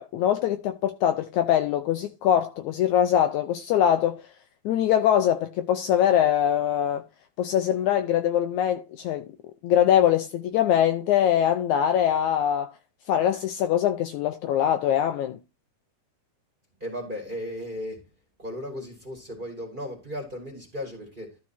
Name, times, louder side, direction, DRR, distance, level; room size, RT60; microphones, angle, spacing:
voice 1, 0.0-4.2 4.7-7.0 7.4-9.3 9.6-12.7 13.1-15.4, left 10 dB, 75° left, 1.9 m, -23 dB
voice 2, 16.8-18.0 18.4-21.4, equal, 15° right, 2.4 m, -35 dB
12.5 x 4.7 x 4.4 m
omnidirectional pair, 3.8 m